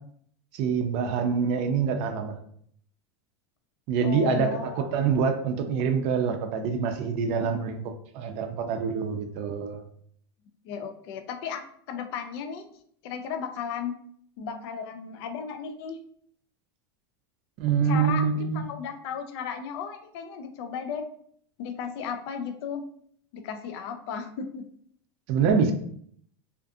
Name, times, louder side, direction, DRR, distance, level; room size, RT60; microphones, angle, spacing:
voice 1, 0.5-2.4 3.9-9.8 17.6-18.6 25.3-25.7, right 6 dB, 50° right, 7 dB, 0.4 m, -26 dB
voice 2, 4.0-4.9 10.6-12.6 13.0-13.9 14.4-16.0 17.8-21.0 21.6-22.8 23.3-24.6, left 7 dB, 65° left, 7 dB, 0.4 m, -35 dB
2.5 x 2.5 x 2.3 m, 0.63 s
supercardioid pair, 120°, 14 cm